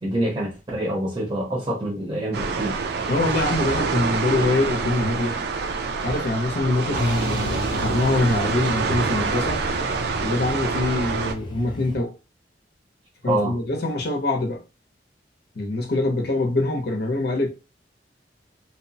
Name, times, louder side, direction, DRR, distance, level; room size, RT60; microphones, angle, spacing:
voice 1, 0.0-2.8 13.3-13.6, right 1 dB, 25° right, 0.6 m, -26 dB
sound 1, 2.3-11.3, right 4 dB, 65° right, 0.4 m, -26 dB
voice 2, 3.1-5.3 6.0-9.6 10.2-12.1 13.2-14.6 15.6-17.5, left 2 dB, 65° left, 0.7 m, -24 dB
Truck, 6.9-12.0, left 1 dB, 25° left, 0.5 m, -33 dB
2.8 x 2.0 x 2.7 m
head